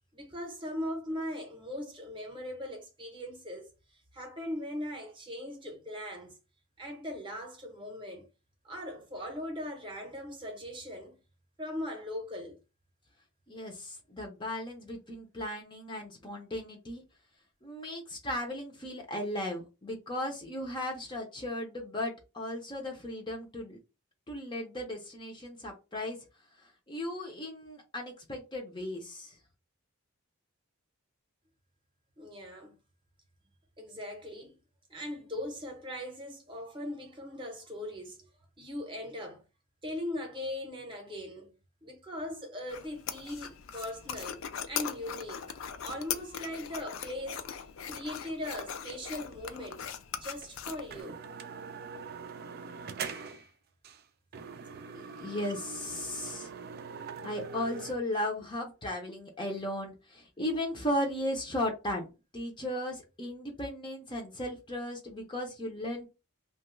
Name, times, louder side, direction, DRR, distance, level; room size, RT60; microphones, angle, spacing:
voice 1, 0.1-3.7 4.1-6.4 6.8-8.3 8.6-11.2 11.6-12.6 32.2-32.8 33.8-34.6 34.9-38.2 38.6-39.4 39.8-41.5 41.8-44.4 44.7-47.4 47.9-49.8 50.1-51.2, left 1 dB, 25° right, 0.8 m, -39 dB
voice 2, 13.5-17.0 17.6-23.8 24.3-26.2 26.9-29.4 54.9-56.5 57.2-66.1, left 1 dB, 20° left, 0.6 m, -36 dB
sound 1, 42.7-51.0, left 8 dB, 65° left, 0.4 m, -40 dB
sound 2, 50.4-50.5 50.9-53.5 53.8-54.0 54.3-57.9, right 5 dB, 45° right, 0.3 m, -42 dB
2.9 x 2.3 x 3.0 m
head